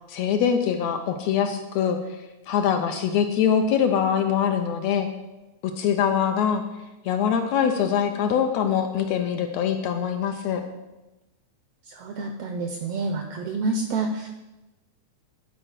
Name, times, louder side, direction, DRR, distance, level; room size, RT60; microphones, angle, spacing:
voice 1, 0.1-2.0 2.5-5.1 5.8-6.6 7.0-10.6, left 8 dB, 75° left, 6 dB, 1.7 m, -23 dB
voice 2, 11.9-14.3, right 3 dB, 80° right, 5 dB, 1.4 m, -28 dB
11.5 x 4.4 x 6.5 m, 1.0 s
omnidirectional pair, 3.5 m